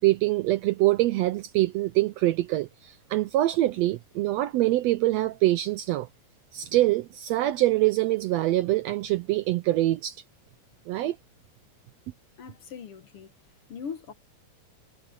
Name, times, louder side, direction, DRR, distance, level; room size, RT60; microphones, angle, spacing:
voice 1, 0.0-6.1 6.5-10.2 10.9-11.2, right 16 dB, 80° right, 1.5 m, -24 dB
voice 2, 12.4-13.3 13.7-14.1, left 6 dB, 60° left, 1.8 m, -40 dB
omnidirectional pair, 3.5 m